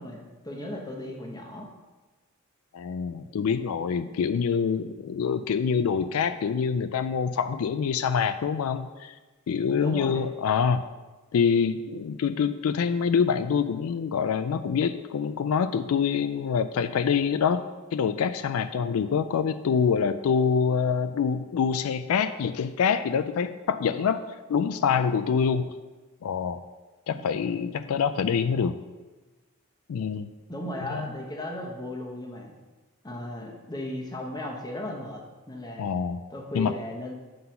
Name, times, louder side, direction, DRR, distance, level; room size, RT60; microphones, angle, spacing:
voice 1, 0.0-1.7 9.7-10.2 27.1-27.2 30.5-32.5 33.0-35.9 36.3-37.1, left 1 dB, 20° left, 0 dB, 1.0 m, -36 dB
voice 2, 2.7-9.1 9.5-10.8 11.3-17.6 17.9-24.2 24.5-25.7 26.2-26.6 27.1-28.7 29.9-30.3 30.9-31.1 35.8-36.2 36.5-36.7, left 6 dB, 90° left, 11 dB, 0.4 m, -25 dB
7.6 x 3.9 x 5.6 m, 1.2 s
head